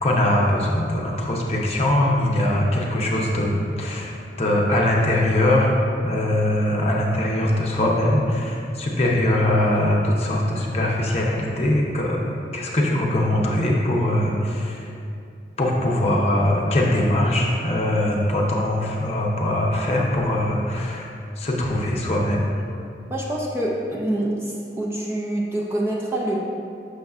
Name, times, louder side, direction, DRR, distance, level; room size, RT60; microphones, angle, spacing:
voice 1, 0.0-5.7 6.0-14.9 15.6-21.1 21.4-22.6, left 1 dB, 35° left, -2 dB, 0.7 m, -22 dB
voice 2, 23.1-26.4, right 1 dB, 15° right, -4 dB, 0.5 m, -26 dB
6.5 x 6.4 x 2.4 m, 2.5 s
head